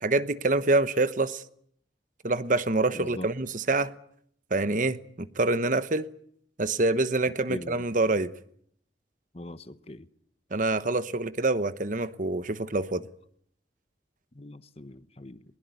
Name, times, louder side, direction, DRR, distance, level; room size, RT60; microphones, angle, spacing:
voice 1, 0.0-1.4 2.2-3.9 4.5-6.1 6.6-8.3 10.5-13.1, right 2 dB, 45° right, 1.1 m, -26 dB
voice 2, 2.9-3.3 7.5-7.8 9.3-10.0 14.3-15.4, left 1 dB, 35° left, 1.1 m, -41 dB
22.0 x 21.0 x 9.6 m
head